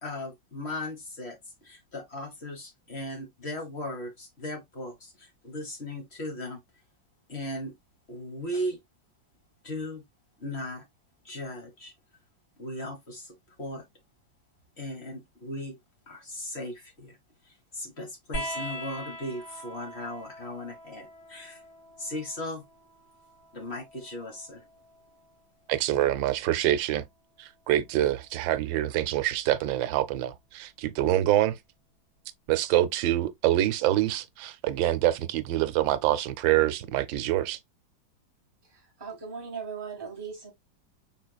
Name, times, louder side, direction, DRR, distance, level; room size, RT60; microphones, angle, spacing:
voice 1, 0.0-1.4 1.6-6.6 7.3-7.7 8.1-8.8 9.6-10.0 10.4-10.8 11.2-11.9 12.6-13.3 13.6-13.8 14.8-15.8 16.1-17.2 17.5-21.6 22.0-22.6 23.5-24.6, left 1 dB, 40° left, 1.4 m, -37 dB
sound 1, 18.3-25.4 26.8-27.6 28.9-29.0, equal, 80° left, 3.6 m, -42 dB
voice 2, 25.7-27.0 27.4-31.6 32.5-37.6, right 13 dB, 90° right, 1.4 m, -25 dB
voice 3, 38.6-40.5, right 6 dB, 25° right, 0.5 m, -39 dB
5.4 x 3.9 x 2.3 m
omnidirectional pair, 2.0 m